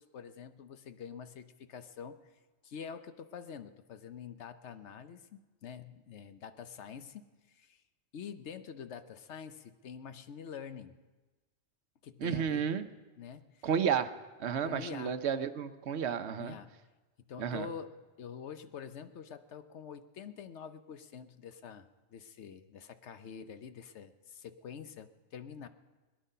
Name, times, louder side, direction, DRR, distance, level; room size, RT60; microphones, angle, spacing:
voice 1, 0.0-2.2 2.6-7.8 8.1-11.0 12.0-12.6 13.2-13.7 14.6-15.2 16.3-16.7 17.3-17.9 18.2-21.9 22.1-25.7, left 7 dB, 75° left, 10 dB, 1.1 m, -46 dB
voice 2, 12.2-12.9 13.6-14.1 14.4-16.6 17.4-17.7, right 7 dB, 70° right, 10 dB, 1.0 m, -32 dB
21.5 x 10.0 x 5.5 m, 1.2 s
omnidirectional pair, 1.2 m